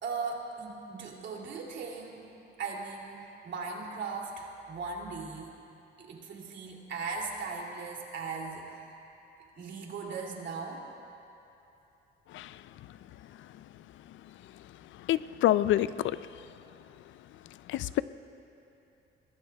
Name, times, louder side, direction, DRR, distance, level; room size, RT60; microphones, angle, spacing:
voice 1, 0.0-2.3 2.6-5.5 6.0-8.9 9.6-10.8, right 4 dB, 65° right, -1 dB, 2.8 m, -38 dB
voice 2, 15.1-16.2 17.7-18.0, left 13 dB, 75° left, 15 dB, 0.4 m, -26 dB
25.5 x 19.5 x 2.3 m, 2.9 s
cardioid pair, 90°, 20 cm